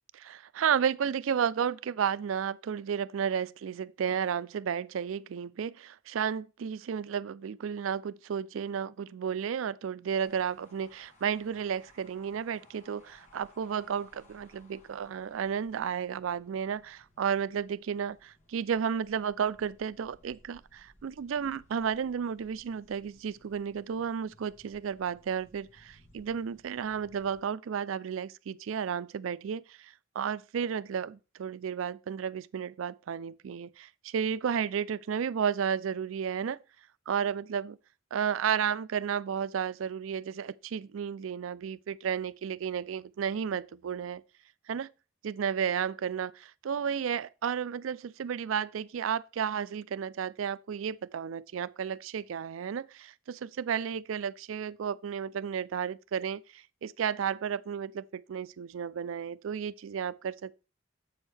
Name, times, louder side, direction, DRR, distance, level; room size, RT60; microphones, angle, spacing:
voice 1, 0.1-36.6 37.1-37.8 38.1-44.2 44.7-44.9 45.2-60.6, right 7 dB, 85° right, 0.4 m, -33 dB
sound 1, 10.2-27.4, left 1 dB, 40° left, 1.3 m, -62 dB
7.7 x 6.3 x 3.3 m
head